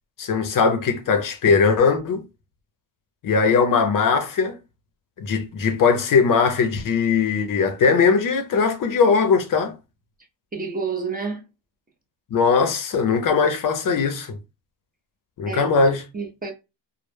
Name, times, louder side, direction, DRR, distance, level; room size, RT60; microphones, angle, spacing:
voice 1, 0.2-2.2 3.2-4.6 5.2-9.7 12.3-14.4 15.4-16.0, left 5 dB, 45° left, 0.5 m, -20 dB
voice 2, 10.5-11.4 15.4-15.7 16.1-16.5, right 5 dB, 20° right, 0.4 m, -29 dB
2.0 x 2.0 x 3.1 m
cardioid pair, 100°, 46 cm